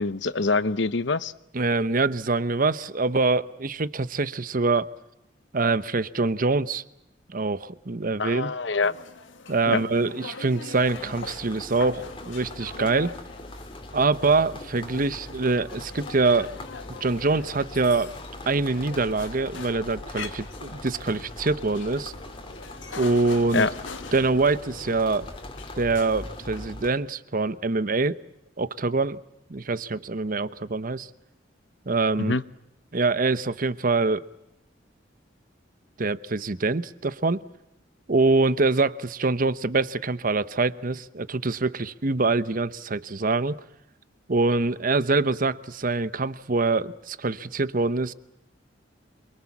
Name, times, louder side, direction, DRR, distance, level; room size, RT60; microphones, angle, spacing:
voice 1, 0.0-1.3 8.2-8.9 9.7-9.8 23.5-23.7 32.2-32.4, left 3 dB, 70° left, 0.9 m, -25 dB
voice 2, 1.5-4.9 5.5-6.8 7.3-8.5 9.5-13.1 13.9-16.5 17.0-18.1 18.5-22.1 23.0-23.7 24.1-25.3 25.8-28.2 28.6-29.2 29.5-31.1 31.9-32.3 32.9-34.2 36.0-37.4 38.1-43.6 44.3-48.1, right 3 dB, 45° right, 0.9 m, -24 dB
sound 1, 8.8-26.7, left 4 dB, 85° left, 1.8 m, -43 dB
sound 2, 10.8-26.9, left 1 dB, 30° left, 2.9 m, -41 dB
27.5 x 23.5 x 7.3 m
head